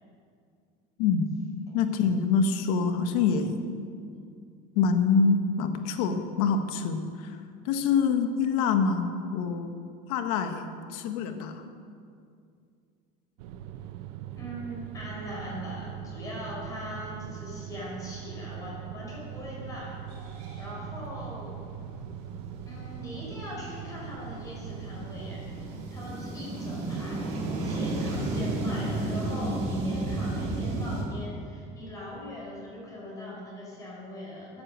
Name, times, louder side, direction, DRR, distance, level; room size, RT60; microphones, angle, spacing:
voice 1, 1.7-3.5 4.7-9.7 10.1-11.6, left 5 dB, 85° left, 7 dB, 1.4 m, -26 dB
sound 1, 13.4-25.9, right 9 dB, 85° right, 0.9 m, -41 dB
voice 2, 14.3-21.6 22.7-27.3 27.6-34.6, left 1 dB, 20° left, -4 dB, 5.1 m, -41 dB
sound 2, 19.5-19.6 20.0-31.0, right 2 dB, 40° right, 3.0 m, -33 dB
14.5 x 10.5 x 8.0 m, 2.3 s
cardioid pair, 175°, 19 cm